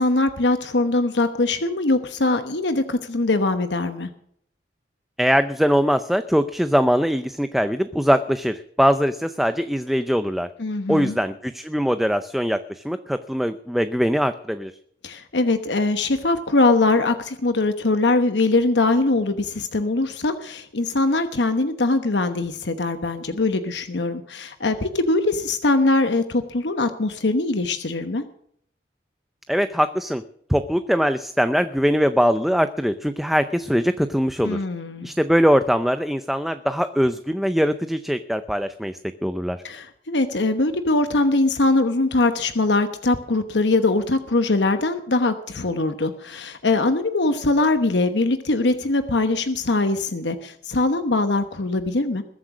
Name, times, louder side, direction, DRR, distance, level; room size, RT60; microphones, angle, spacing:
voice 1, 0.0-4.1 10.6-11.2 15.0-28.2 34.4-35.1 39.6-52.2, left 2 dB, 90° left, 9 dB, 1.1 m, -22 dB
voice 2, 5.2-10.5 10.9-14.7 29.5-30.2 30.5-34.6 35.0-39.6, equal, ahead, 10 dB, 0.5 m, -21 dB
21.0 x 7.9 x 6.1 m, 0.67 s
head